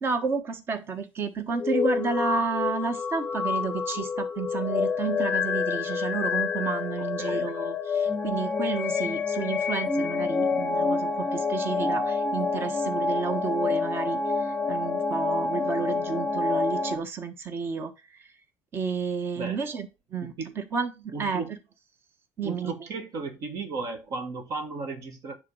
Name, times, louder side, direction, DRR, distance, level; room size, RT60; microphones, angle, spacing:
voice 1, 0.0-14.2 14.7-17.9 18.7-21.4 22.4-22.7, right 5 dB, 30° right, 1.2 m, -31 dB
sound 1, 1.5-17.0, left 4 dB, 15° left, 0.8 m, -28 dB
voice 2, 7.2-7.5 19.3-19.7 20.2-20.6 21.1-21.5 22.4-25.4, right 3 dB, 50° right, 1.6 m, -35 dB
10.5 x 3.7 x 5.5 m
cardioid pair, 165°, 7 cm